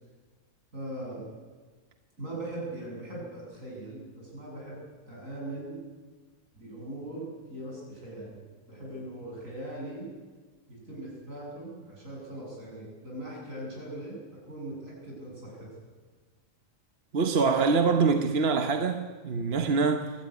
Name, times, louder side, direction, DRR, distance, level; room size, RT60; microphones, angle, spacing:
voice 1, 0.7-1.4 2.2-5.8 6.5-8.4 8.7-10.1 10.7-14.2 14.5-15.7, right 1 dB, 70° right, 7.9 m, -40 dB
voice 2, 17.1-20.1, right 4 dB, 50° right, 1.2 m, -25 dB
21.5 x 14.0 x 9.6 m
omnidirectional pair, 1.4 m